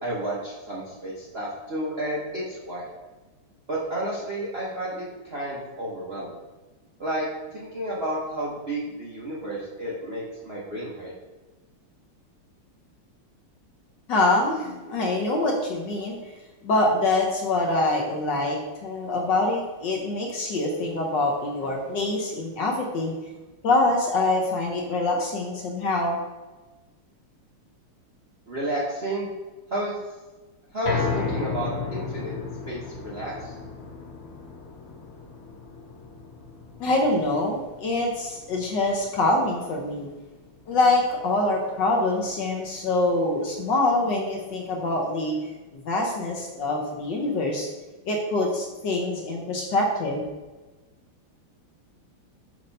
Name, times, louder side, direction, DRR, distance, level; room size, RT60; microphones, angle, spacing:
voice 1, 0.0-2.9 3.7-6.3 7.0-11.1 28.5-29.3 29.7-30.0 30.7-32.3 32.7-33.5, right 1 dB, 50° right, -7 dB, 0.7 m, -31 dB
voice 2, 14.1-16.2 16.6-23.1 23.6-26.2 36.8-40.1 40.7-45.4 45.7-47.7 48.1-50.2, left 2 dB, 65° left, 0 dB, 1.2 m, -25 dB
sound 1, 30.9-43.1 43.5-43.6 44.1-44.2, left 5 dB, 90° left, 1.9 m, -36 dB
6.6 x 2.9 x 5.2 m, 1.2 s
omnidirectional pair, 2.4 m